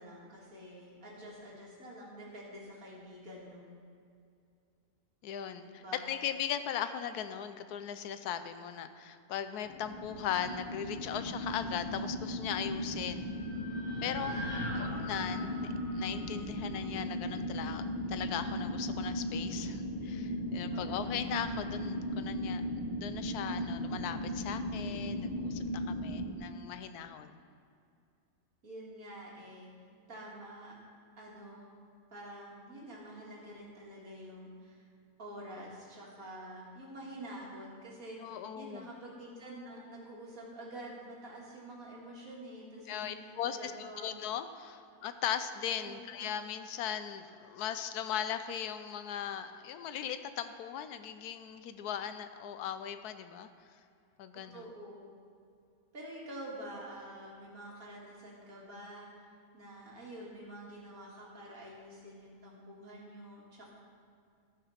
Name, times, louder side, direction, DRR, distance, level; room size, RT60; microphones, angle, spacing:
voice 1, 0.0-3.7 5.6-6.1 14.2-14.8 20.7-20.9 28.6-29.7 30.1-30.8 31.2-31.7 32.1-34.8 35.2-44.1 45.8-46.1 54.3-55.2 55.9-59.1 59.5-63.7, right 1 dB, 60° right, -4 dB, 2.6 m, -47 dB
voice 2, 5.2-13.3 14.0-14.4 14.7-15.5 15.9-17.8 18.1-22.6 23.0-27.4 38.2-38.9 42.9-53.5 54.2-54.7, left 9 dB, 85° left, 10 dB, 1.1 m, -38 dB
sound 1, 9.7-26.3, equal, 35° left, 0.8 m, -37 dB
sound 2, 12.9-17.0, equal, 60° left, 3.0 m, -43 dB
14.5 x 5.6 x 5.7 m, 2.4 s
omnidirectional pair, 1.6 m